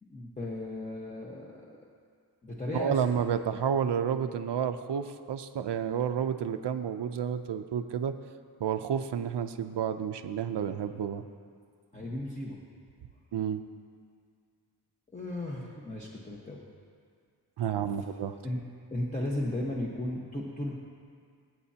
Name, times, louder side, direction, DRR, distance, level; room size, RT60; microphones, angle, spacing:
voice 1, 0.0-1.8 2.4-3.0 11.9-12.6 15.1-16.6 17.9-18.0 18.4-18.6 18.9-20.7, left 1 dB, 20° left, -4 dB, 1.3 m, -35 dB
voice 2, 2.7-8.1 8.6-11.2 13.3-13.6 17.6-18.4, right 8 dB, 85° right, 8 dB, 0.7 m, -30 dB
26.0 x 8.8 x 2.9 m, 2.1 s
wide cardioid pair, 130°, 41 cm